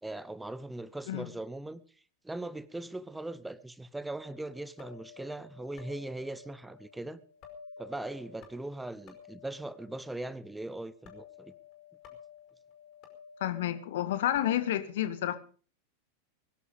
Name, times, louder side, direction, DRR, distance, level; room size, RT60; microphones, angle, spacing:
voice 1, 0.0-1.8 2.2-7.2 7.8-11.5, right 2 dB, 5° right, 1.0 m, -40 dB
sound 1, 4.2-14.7, left 6 dB, 35° left, 5.0 m, -53 dB
voice 2, 13.4-15.4, left 12 dB, 55° left, 1.8 m, -30 dB
22.0 x 11.0 x 5.3 m
figure-of-eight pair, 90°, 0 cm